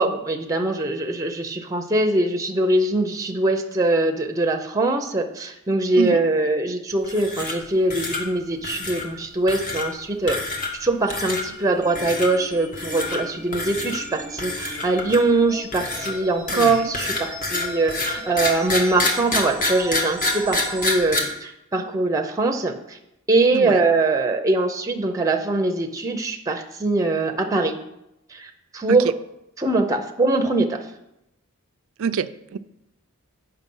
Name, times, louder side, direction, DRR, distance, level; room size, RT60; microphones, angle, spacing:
voice 1, 0.0-23.0 23.3-27.7 28.3-29.0 29.6-30.8, right 2 dB, 15° right, 5 dB, 0.6 m, -22 dB
sound 1, 7.0-7.6 7.9-8.2 8.6-9.1 9.5-9.9 10.3-10.8 11.1-11.4 12.0-12.3 12.7-13.2 13.5-14.0 14.4-15.3 15.7-21.2, left 2 dB, 40° left, 1.4 m, -26 dB
sound 2, 11.1-21.0, right 1 dB, 5° left, 1.2 m, -39 dB
voice 2, 16.5-16.9 23.5-23.8 28.9-29.1 32.0-32.6, right 6 dB, 70° right, 11 dB, 0.4 m, -27 dB
8.1 x 5.7 x 5.4 m, 0.86 s
head